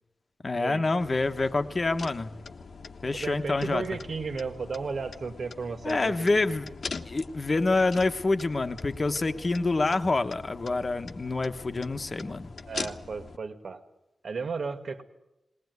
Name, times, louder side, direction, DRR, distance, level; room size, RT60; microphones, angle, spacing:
voice 1, 0.4-2.3 3.0-3.8 5.8-6.7 7.0-12.5, left 3 dB, 35° left, 8 dB, 1.2 m, -27 dB
Turning signal, 1.0-13.4, left 4 dB, 65° left, 1.2 m, -43 dB
voice 2, 3.1-6.6 12.7-13.8 14.2-15.0, right 4 dB, 65° right, 7 dB, 2.1 m, -34 dB
20.5 x 19.0 x 9.5 m, 0.92 s
wide cardioid pair, 130°, 0 cm